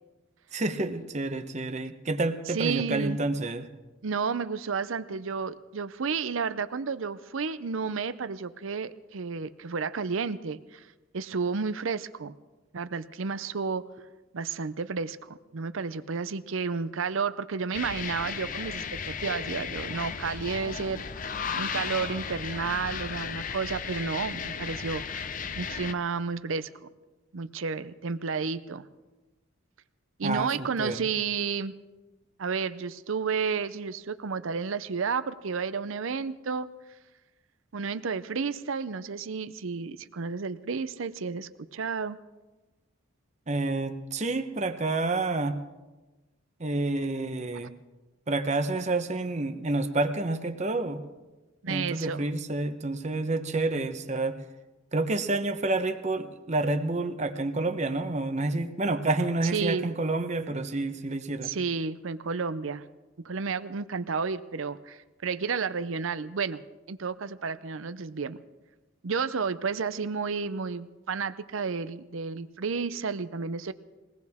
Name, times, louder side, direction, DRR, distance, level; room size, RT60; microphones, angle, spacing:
voice 1, 0.5-3.7 30.2-31.0 43.5-45.5 46.6-47.7 48.3-51.0 51.7-54.4 54.9-61.5, right 2 dB, 35° right, 8 dB, 0.9 m, -29 dB
voice 2, 2.5-3.2 4.0-12.4 12.7-13.8 14.3-21.0 21.6-26.9 27.3-28.9 30.2-31.7 32.4-36.7 37.7-42.2 51.6-52.2 59.5-59.9 61.4-62.9 63.2-66.6 66.9-68.4 69.0-73.7, right 5 dB, 70° right, 13 dB, 0.6 m, -31 dB
sound 1, 17.7-25.9, left 6 dB, 40° left, 0.6 m, -35 dB
22.0 x 18.0 x 3.6 m, 1.2 s
head